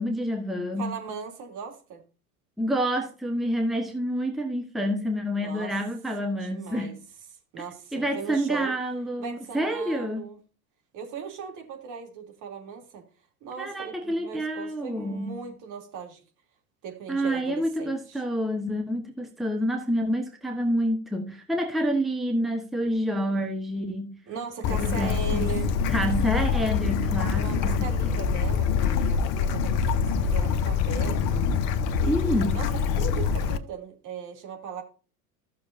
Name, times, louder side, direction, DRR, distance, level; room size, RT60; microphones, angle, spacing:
voice 1, 0.0-0.9 2.6-7.0 7.9-10.2 13.6-15.4 17.1-24.1 24.7-25.6 25.9-28.4 32.1-32.6, equal, ahead, 1.2 m, -28 dB
voice 2, 0.8-2.0 5.4-5.7 6.4-6.9 7.5-8.8 9.2-10.4 10.9-13.0 13.4-16.2 16.8-18.2 24.3-25.7 27.3-31.2 32.0-34.8, right 6 dB, 40° right, 3.0 m, -38 dB
Bird / Stream, 24.6-33.6, left 6 dB, 40° left, 1.0 m, -25 dB
15.0 x 6.5 x 2.6 m
hypercardioid pair, 90°, 45 cm